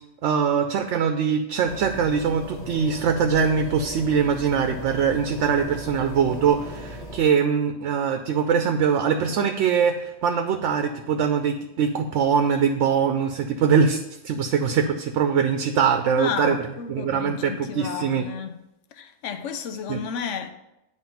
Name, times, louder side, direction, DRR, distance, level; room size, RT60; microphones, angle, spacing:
voice 1, 0.2-16.6 16.9-18.2 19.9-20.0, right 6 dB, 75° right, 0.9 m, -22 dB
sound 1, 1.7-7.2, left 1 dB, 40° left, 0.8 m, -37 dB
voice 2, 16.2-18.6 18.9-20.5, left 7 dB, 85° left, 1.0 m, -32 dB
9.1 x 3.1 x 5.7 m
omnidirectional pair, 1.2 m